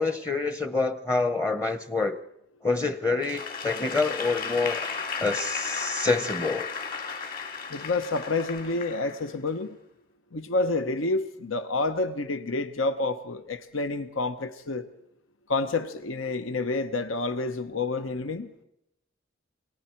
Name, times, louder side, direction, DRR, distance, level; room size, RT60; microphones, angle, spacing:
voice 1, 0.0-2.2 2.6-4.9 5.2-6.7, left 3 dB, 15° left, 0.8 m, -27 dB
Applause / Crowd, 3.2-9.5, left 5 dB, 50° left, 2.5 m, -34 dB
voice 2, 7.7-9.8 10.3-14.8 15.5-18.5, left 3 dB, 85° left, 1.0 m, -29 dB
29.5 x 23.0 x 4.5 m
head